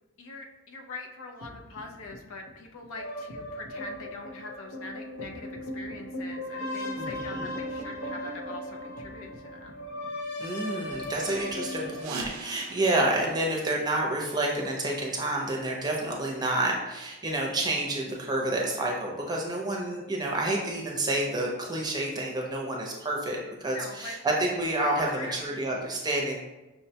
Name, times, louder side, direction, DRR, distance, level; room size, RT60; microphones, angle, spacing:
voice 1, 0.2-9.8 23.7-24.2 25.1-25.4, left 3 dB, 65° left, 3 dB, 0.5 m, -43 dB
sound 1, 1.4-12.0, left 1 dB, 85° left, 0.8 m, -37 dB
voice 2, 7.0-7.5 10.4-26.4, right 1 dB, 20° right, -1 dB, 0.6 m, -29 dB
sound 2, 11.9-14.6, right 4 dB, 65° right, 0.4 m, -43 dB
5.6 x 2.2 x 2.8 m, 1.1 s
head